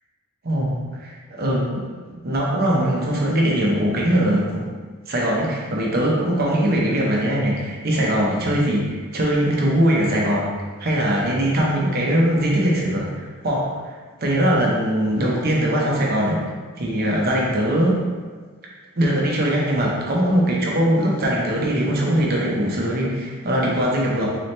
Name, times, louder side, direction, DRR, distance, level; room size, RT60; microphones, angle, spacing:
voice 1, 0.4-0.7 1.0-4.7 5.1-10.5 10.8-13.7 14.2-16.4 16.8-18.0 19.0-24.4, right 1 dB, 45° right, -3 dB, 0.7 m, -21 dB
4.0 x 2.9 x 3.2 m, 1.4 s
head